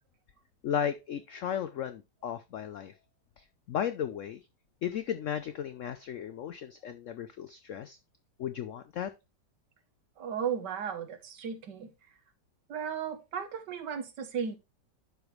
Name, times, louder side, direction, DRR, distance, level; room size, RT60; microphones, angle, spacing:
voice 1, 0.6-2.9 3.4-4.4 4.8-8.0 8.4-9.1, left 9 dB, 85° left, 11 dB, 0.6 m, -35 dB
voice 2, 10.2-11.9 12.7-14.6, right 7 dB, 70° right, 9 dB, 1.7 m, -35 dB
11.5 x 4.9 x 3.2 m, 0.25 s
omnidirectional pair, 1.9 m